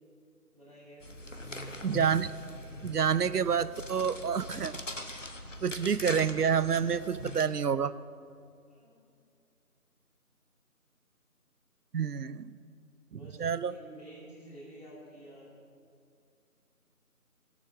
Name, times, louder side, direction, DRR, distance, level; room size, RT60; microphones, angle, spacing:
voice 1, 0.5-1.0 8.7-9.0 13.1-15.6, right 1 dB, 25° right, -8 dB, 2.5 m, -50 dB
sound 1, 1.0-7.4, left 1 dB, 55° left, 0.9 m, -42 dB
voice 2, 1.8-2.3 2.8-4.7 5.6-8.0 11.9-12.6 13.1-13.7, right 7 dB, 85° right, 16 dB, 0.6 m, -28 dB
17.0 x 7.1 x 6.4 m, 2.3 s
figure-of-eight pair, 175°, 45 cm